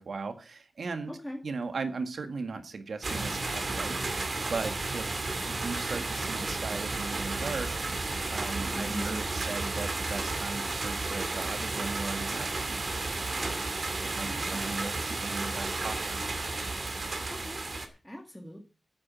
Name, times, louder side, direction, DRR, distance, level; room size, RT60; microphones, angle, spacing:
voice 1, 0.0-1.1 1.4-4.1 4.5-8.0 8.3-12.8 13.3-13.6 14.0-16.2, right 4 dB, 70° right, 7 dB, 1.8 m, -38 dB
voice 2, 1.1-1.4 8.7-9.2 14.2-14.8 17.2-18.6, equal, 5° left, 1 dB, 2.0 m, -40 dB
sound 1, 3.0-17.9, right 3 dB, 45° right, 2.3 m, -33 dB
9.4 x 8.9 x 7.4 m, 0.35 s
wide cardioid pair, 115°, 0 cm